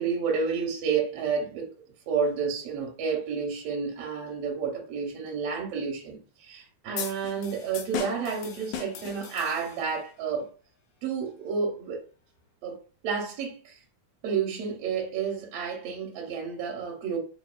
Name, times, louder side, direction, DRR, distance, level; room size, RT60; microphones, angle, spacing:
voice 1, 0.0-1.7 2.1-10.5 11.0-12.1 12.6-13.8 14.2-17.2, right 6 dB, 70° right, 1.7 m, -30 dB
sound 1, 7.0-10.0, left 7 dB, 85° left, 2.1 m, -37 dB
5.0 x 2.7 x 2.2 m
omnidirectional pair, 3.4 m